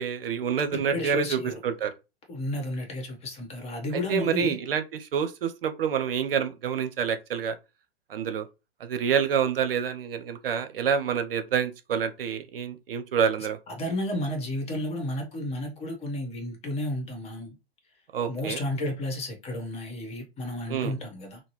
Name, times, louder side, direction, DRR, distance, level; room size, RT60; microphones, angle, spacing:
voice 1, 0.0-1.9 4.1-4.8 5.1-7.5 8.1-8.5 8.8-13.6 18.1-18.6 20.7-20.9, right 7 dB, 65° right, 0.7 m, -27 dB
voice 2, 0.7-1.6 2.3-4.6 13.7-17.5 18.3-21.4, left 1 dB, 20° left, 1.1 m, -32 dB
3.9 x 2.0 x 3.0 m
figure-of-eight pair, 110°, 30 cm